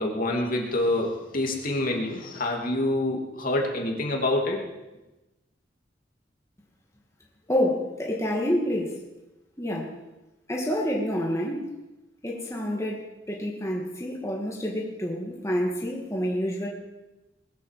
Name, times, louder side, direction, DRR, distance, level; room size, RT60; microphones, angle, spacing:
voice 1, 0.0-4.6, left 1 dB, 50° left, 1 dB, 2.8 m, -26 dB
voice 2, 7.5-9.0 9.6-9.9 10.5-11.7 12.2-13.0 13.3-16.7, equal, 15° left, -2 dB, 2.2 m, -28 dB
20.5 x 8.4 x 7.6 m, 1.0 s
head